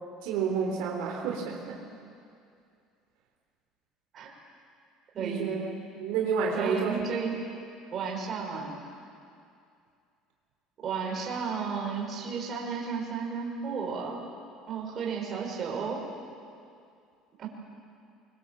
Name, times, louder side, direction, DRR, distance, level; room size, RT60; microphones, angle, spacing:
voice 1, 0.2-1.8 5.2-5.7 6.0-7.0, right 6 dB, 80° right, 0 dB, 3.6 m, -30 dB
voice 2, 5.1-5.5 6.5-7.3 7.9-8.8 10.8-14.3 14.7-16.0 17.4-17.5, right 6 dB, 35° right, -1 dB, 5.5 m, -33 dB
24.5 x 23.0 x 7.7 m, 2.4 s
cardioid pair, 145°, 0 cm